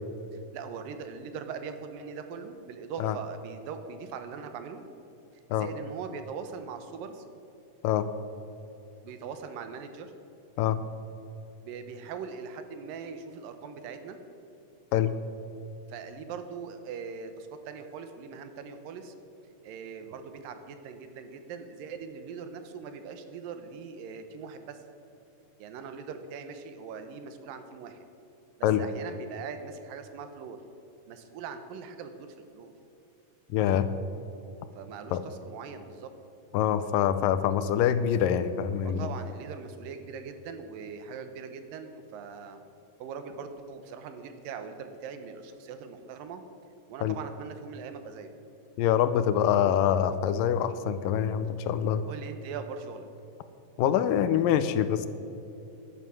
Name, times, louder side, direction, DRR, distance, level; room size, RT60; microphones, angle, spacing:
voice 1, 0.5-4.8 5.6-7.2 9.0-10.1 11.6-14.2 15.9-19.1 19.6-24.8 25.6-28.0 28.6-30.6 31.1-32.7 34.7-36.1 38.8-42.6 43.0-46.4 46.9-48.3 52.1-53.1, right 6 dB, 85° right, 8 dB, 2.7 m, -41 dB
voice 2, 33.5-33.9 35.1-35.2 36.5-39.1 47.0-47.2 48.8-52.0 53.8-55.1, left 9 dB, 85° left, 12 dB, 2.3 m, -25 dB
11.5 x 9.9 x 7.6 m, 2.9 s
omnidirectional pair, 3.9 m